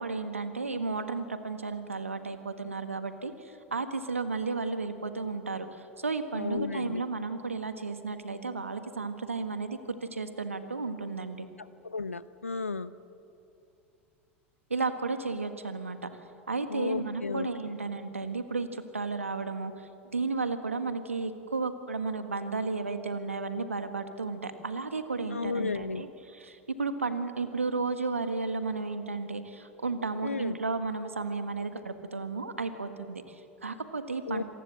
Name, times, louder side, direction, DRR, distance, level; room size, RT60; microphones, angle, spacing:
voice 1, 0.0-11.5 14.7-16.1 16.5-34.4, right 3 dB, 85° right, 9 dB, 1.5 m, -33 dB
voice 2, 6.4-7.0 11.8-12.9 16.7-17.5 25.3-26.0 30.2-30.6 34.3-34.4, left 4 dB, 85° left, 16 dB, 0.7 m, -33 dB
27.0 x 18.5 x 7.8 m, 2.7 s
figure-of-eight pair, 85°, 7 cm